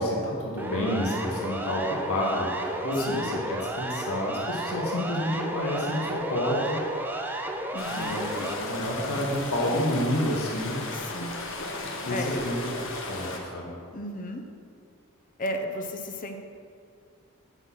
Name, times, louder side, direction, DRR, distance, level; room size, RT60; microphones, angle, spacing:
voice 1, 0.0-6.8 7.9-10.8 12.0-12.6 13.1-13.7, left 1 dB, 80° left, -4 dB, 1.6 m, -29 dB
Siren, 0.6-8.6, right 1 dB, 10° right, 0.6 m, -33 dB
voice 2, 7.7-8.2 10.9-11.3 12.1-12.4 13.9-14.4 15.4-16.4, left 1 dB, 40° left, 5 dB, 0.7 m, -34 dB
sound 1, 7.8-13.4, left 2 dB, 65° left, 1.1 m, -36 dB
7.9 x 6.0 x 6.2 m, 2.3 s
head